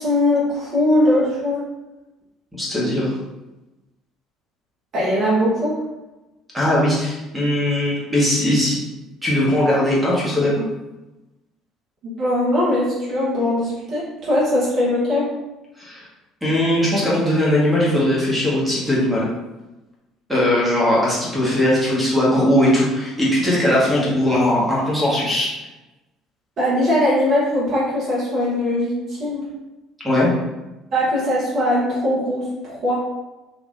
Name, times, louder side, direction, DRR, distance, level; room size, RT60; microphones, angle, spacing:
voice 1, 0.0-1.6 4.9-5.7 12.0-15.3 26.6-29.5 30.9-32.9, left 1 dB, 45° right, -8 dB, 1.1 m, -20 dB
voice 2, 2.5-3.1 6.5-8.8 9.2-10.5 15.8-16.0 16.4-19.3 20.3-25.5 30.0-30.3, left 1 dB, 10° right, -6 dB, 1.4 m, -19 dB
3.4 x 2.6 x 2.5 m, 1.1 s
figure-of-eight pair, 55°, 0 cm